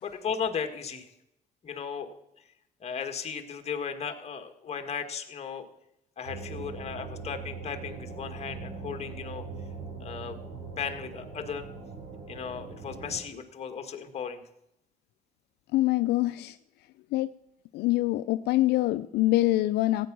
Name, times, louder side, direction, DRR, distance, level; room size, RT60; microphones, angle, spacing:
voice 1, 0.0-1.1 1.6-2.1 2.8-5.7 6.2-9.4 10.0-10.4 10.8-11.7 12.3-14.4, left 6 dB, 40° left, 7 dB, 1.7 m, -36 dB
sound 1, 6.3-13.2, right 4 dB, 90° right, 5.9 m, -41 dB
voice 2, 15.7-16.6 17.1-17.3 17.7-20.1, left 17 dB, 80° left, 11 dB, 0.5 m, -25 dB
15.5 x 8.9 x 6.2 m, 0.81 s
cardioid pair, 110°, 17 cm